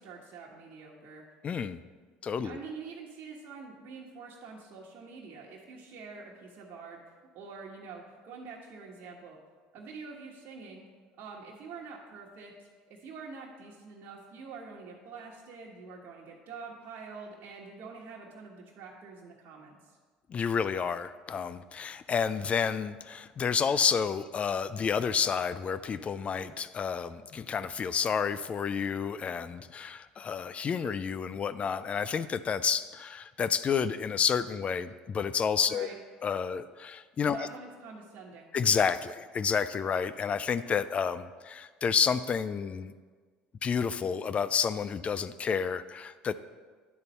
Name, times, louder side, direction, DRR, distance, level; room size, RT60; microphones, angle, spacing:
voice 1, 0.0-1.2 2.4-9.4 9.7-10.8 11.2-19.9 35.7-36.0 37.3-38.5, right 4 dB, 55° right, -4 dB, 1.3 m, -46 dB
voice 2, 1.4-1.8 2.2-2.6 20.3-35.9 36.2-37.5 38.5-42.9 43.6-46.3, left 6 dB, 35° left, 14 dB, 0.4 m, -30 dB
10.5 x 4.1 x 5.4 m, 1.5 s
supercardioid pair, 80°, 4 cm